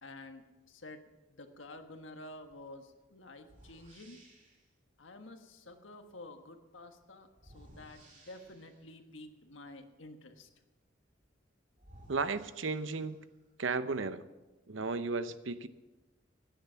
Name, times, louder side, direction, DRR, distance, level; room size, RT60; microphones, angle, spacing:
voice 1, 0.0-4.2 5.0-10.5, left 2 dB, 85° left, 6 dB, 1.5 m, -50 dB
sound 1, 2.5-2.7 3.4-4.7 7.3-8.9 11.2-11.3 11.8-13.4, right 1 dB, 40° right, 3.2 m, -58 dB
voice 2, 12.1-13.2 13.6-14.2 14.7-15.7, right 4 dB, 80° right, 13 dB, 0.8 m, -34 dB
16.0 x 10.5 x 5.7 m, 1.1 s
head